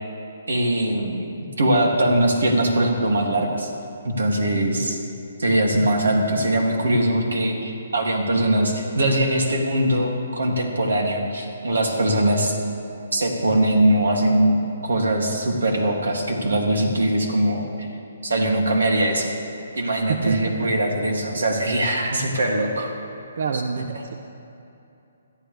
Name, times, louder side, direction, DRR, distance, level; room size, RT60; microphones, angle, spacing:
voice 1, 0.5-3.7 4.0-5.0 5.4-12.6 13.1-14.6 14.8-17.9 18.2-19.3 19.8-22.9, right 1 dB, 90° right, 1 dB, 2.6 m, -21 dB
voice 2, 20.1-20.7 23.3-24.1, right 5 dB, 60° right, 5 dB, 0.7 m, -27 dB
21.5 x 13.0 x 3.4 m, 2.8 s
hypercardioid pair, 160°, 0 cm